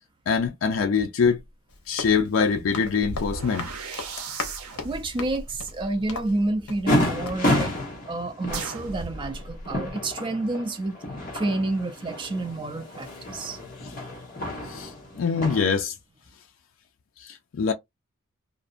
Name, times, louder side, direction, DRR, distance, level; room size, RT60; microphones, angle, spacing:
voice 1, 0.3-1.4 1.9-3.7 4.1-4.2 13.8-13.9 14.7-14.9 15.2-15.9 17.2-17.7, left 5 dB, 60° left, 0.4 m, -24 dB
Run, 1.7-7.0 7.2-7.4, left 4 dB, 85° left, 0.8 m, -38 dB
sound 1, 3.0-7.1 8.5-9.9, right 3 dB, 85° right, 0.5 m, -38 dB
voice 2, 4.8-7.7 8.1-11.0 11.3-13.6, right 2 dB, 25° right, 0.4 m, -29 dB
sound 2, 6.9-15.6, left 1 dB, 40° left, 0.9 m, -30 dB
2.6 x 2.0 x 2.4 m
head